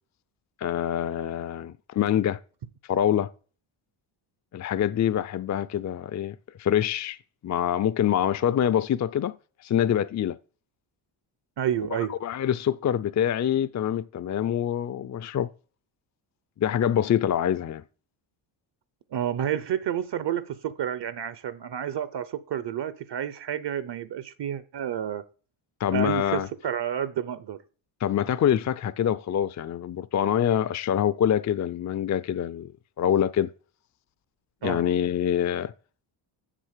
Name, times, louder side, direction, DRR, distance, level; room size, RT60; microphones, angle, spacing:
voice 1, 0.6-2.4 2.9-3.3 4.5-7.2 7.4-9.3 9.6-10.4 12.1-15.5 16.6-17.8 25.8-26.5 28.0-32.7 33.0-33.5 34.6-35.7, left 10 dB, 35° left, 0.5 m, -25 dB
voice 2, 11.6-12.1 19.1-25.2 25.9-27.6 34.6-34.8, right 9 dB, 55° right, 0.8 m, -30 dB
7.5 x 7.2 x 6.6 m
cardioid pair, 95°, 49 cm